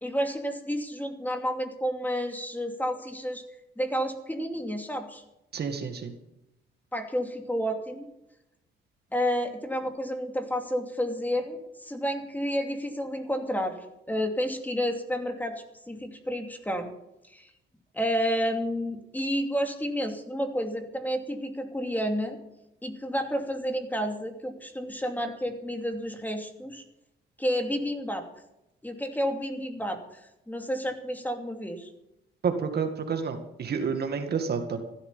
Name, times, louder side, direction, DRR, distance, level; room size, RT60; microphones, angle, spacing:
voice 1, 0.0-3.4 3.8-5.2 6.9-8.1 9.1-13.8 14.1-16.9 17.3-17.5 17.9-22.4 22.8-26.8 27.4-28.2 28.8-31.9, equal, 10° left, 4 dB, 2.7 m, -30 dB
voice 2, 5.5-6.1 32.4-34.8, right 6 dB, 55° right, 6 dB, 2.1 m, -29 dB
15.0 x 12.5 x 5.7 m, 0.87 s
cardioid pair, 90°, 20 cm